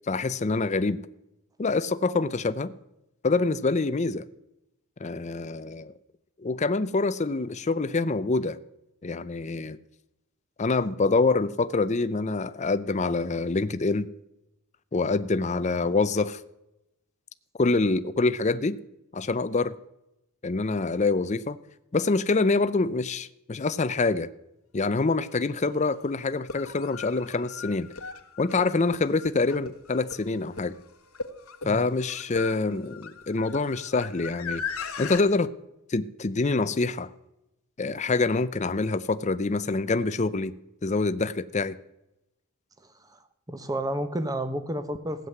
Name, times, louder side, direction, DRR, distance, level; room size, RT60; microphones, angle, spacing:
voice 1, 0.1-1.0 1.6-2.7 3.2-4.2 5.0-5.9 6.4-8.6 9.0-9.8 10.6-14.1 14.9-16.4 17.6-18.8 19.1-19.7 20.4-21.6 21.9-24.3 24.7-27.9 28.4-30.8 31.6-34.6 35.0-35.5 35.9-37.1 37.8-40.5 40.8-41.8, left 3 dB, 30° left, 13 dB, 0.5 m, -26 dB
sound 1, 25.2-25.3 26.3-35.2, left 5 dB, 75° left, 1.3 m, -38 dB
voice 2, 43.5-45.3, right 1 dB, 15° right, 10 dB, 1.1 m, -31 dB
16.0 x 7.6 x 9.5 m, 0.88 s
head